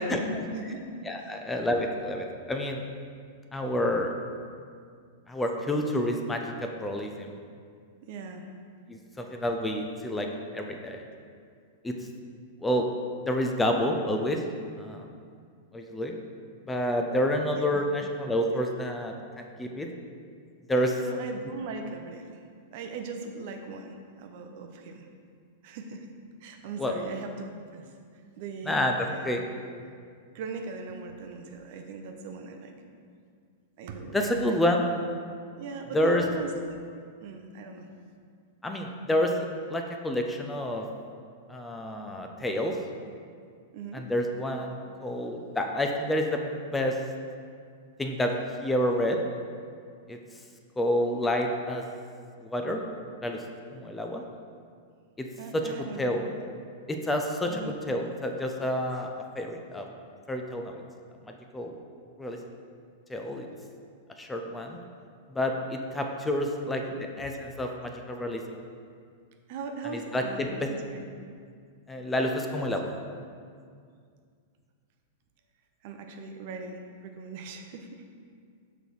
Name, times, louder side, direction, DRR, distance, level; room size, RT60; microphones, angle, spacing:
voice 1, 0.1-0.8 1.2-1.3 8.1-8.5 17.5-17.6 21.0-22.4 22.7-25.1 25.6-26.1 26.4-27.9 28.4-28.8 29.0-29.4 30.3-32.7 33.8-34.7 35.6-36.5 37.2-37.9 43.7-44.1 55.4-56.2 57.5-57.7 66.6-67.4 69.5-71.0 75.8-78.1, right 4 dB, 50° right, 5 dB, 0.6 m, -39 dB
voice 2, 1.1-2.8 3.5-4.1 5.3-7.3 8.9-10.3 10.5-11.0 11.8-12.0 12.6-12.9 13.3-14.4 14.8-15.1 15.7-16.1 16.7-19.9 20.7-21.0 26.8-26.9 28.7-29.4 34.1-34.8 35.9-36.2 38.6-39.3 39.7-40.9 41.5-42.8 43.9-46.4 46.7-47.0 48.0-49.2 50.1-50.2 50.8-51.8 52.4-52.8 53.2-53.4 53.7-54.2 55.2-55.3 55.5-56.2 56.9-57.6 57.9-59.1 59.4-59.9 60.3-60.8 61.5-61.7 62.2-62.4 63.1-63.5 64.2-64.8 65.3-66.8 67.2-67.3 67.6-68.4 69.9-70.7 71.9-72.9, left 1 dB, 10° left, 3 dB, 0.6 m, -28 dB
6.6 x 3.9 x 4.7 m, 2.2 s
figure-of-eight pair, 100°, 0 cm